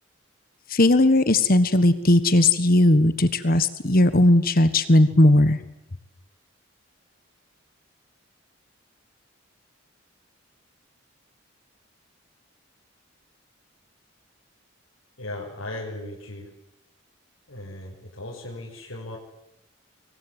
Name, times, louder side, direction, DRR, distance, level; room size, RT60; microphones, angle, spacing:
voice 1, 0.7-5.6, left 1 dB, 45° left, 12 dB, 1.5 m, -18 dB
voice 2, 15.2-16.5 17.5-19.2, left 1 dB, 90° left, -4 dB, 6.5 m, -37 dB
26.0 x 23.0 x 9.9 m, 0.81 s
head